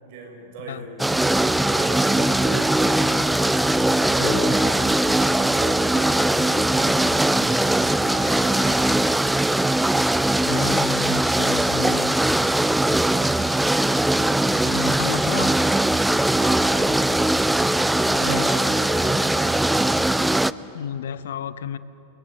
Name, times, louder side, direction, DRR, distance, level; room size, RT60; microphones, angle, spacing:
voice 1, 0.0-3.2 4.0-7.7 8.0-8.7 16.2-17.0 18.0-19.2, right 2 dB, 45° right, 1 dB, 6.6 m, -37 dB
sound 1, 1.0-20.5, right 1 dB, 5° right, 0.5 m, -20 dB
voice 2, 4.2-4.5 10.5-12.2 14.6-15.6 18.2-18.5 20.7-21.8, left 8 dB, 60° left, 15 dB, 0.9 m, -32 dB
29.5 x 21.0 x 7.9 m, 3.0 s
figure-of-eight pair, 90°, 0 cm